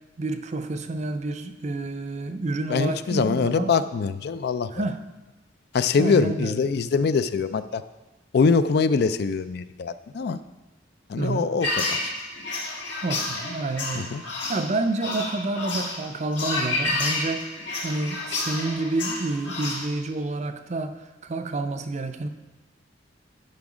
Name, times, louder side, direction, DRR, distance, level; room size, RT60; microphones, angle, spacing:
voice 1, 0.2-3.8 4.7-5.0 6.0-6.5 11.2-11.5 13.0-20.9 21.2-22.3, right 2 dB, 40° right, 8 dB, 0.5 m, -29 dB
voice 2, 2.7-4.8 5.7-7.8 8.3-10.4 11.1-12.1 13.9-14.2, left 5 dB, 60° left, 13 dB, 0.3 m, -23 dB
sound 1, 11.6-19.9, left 2 dB, 75° left, 1.8 m, -30 dB
11.0 x 5.0 x 4.9 m, 1.1 s
head